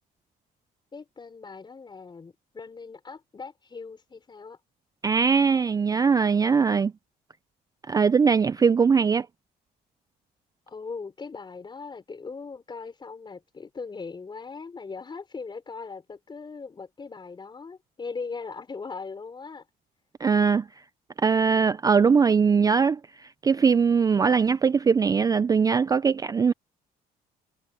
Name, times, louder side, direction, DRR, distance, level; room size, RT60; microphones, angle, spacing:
voice 1, 0.9-4.6 10.7-19.6, left 4 dB, 25° left, 4.7 m, -39 dB
voice 2, 5.0-6.9 7.9-9.3 20.2-20.7 21.2-26.5, right 5 dB, 20° right, 0.4 m, -21 dB
cardioid pair, 110°, 17 cm